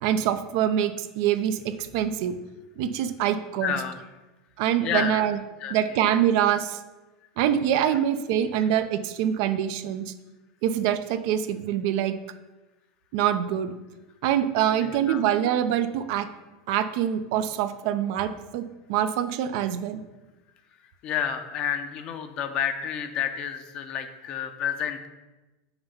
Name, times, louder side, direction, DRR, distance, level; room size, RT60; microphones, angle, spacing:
voice 1, 0.0-2.4 2.8-3.8 4.6-5.4 5.7-6.8 7.4-10.1 10.6-12.2 13.1-13.7 14.2-16.3 16.7-20.0, right 10 dB, 65° right, 10 dB, 0.6 m, -25 dB
voice 2, 3.6-4.0 4.8-5.2 5.6-5.7 7.9-8.0 14.8-15.2 21.0-25.1, left 8 dB, 45° left, 8 dB, 0.8 m, -30 dB
5.9 x 4.3 x 5.6 m, 1.1 s
hypercardioid pair, 105°, 2 cm